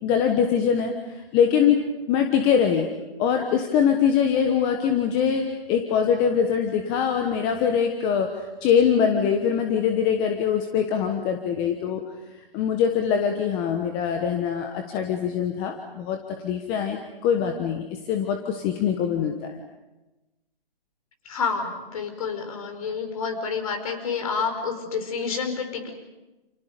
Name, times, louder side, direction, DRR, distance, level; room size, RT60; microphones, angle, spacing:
voice 1, 0.0-1.8 2.1-2.9 3.2-12.0 12.5-16.2 16.4-19.6, left 7 dB, 15° left, 4 dB, 1.2 m, -23 dB
voice 2, 21.2-25.9, left 5 dB, 35° left, 6 dB, 5.1 m, -29 dB
30.0 x 29.5 x 5.3 m, 1.1 s
hypercardioid pair, 160°, 29 cm